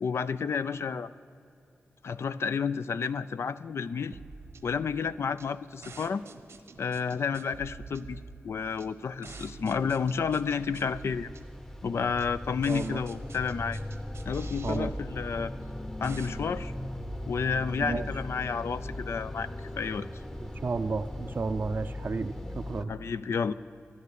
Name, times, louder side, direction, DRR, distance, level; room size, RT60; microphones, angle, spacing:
voice 1, 0.0-1.1 2.0-4.2 4.6-6.2 6.8-11.3 11.8-13.8 14.2-15.5 16.0-16.7 17.3-20.2 22.9-23.5, left 6 dB, 75° left, 13 dB, 0.4 m, -31 dB
sound 1, 4.1-17.7, right 4 dB, 85° right, 1.0 m, -48 dB
sound 2, 9.7-22.8, left 1 dB, 10° left, 0.8 m, -39 dB
voice 2, 12.7-13.0 14.6-14.9 17.8-18.1 20.6-22.9, right 4 dB, 50° right, 8 dB, 0.4 m, -32 dB
13.5 x 10.5 x 8.2 m, 2.6 s
wide cardioid pair, 85°, 4 cm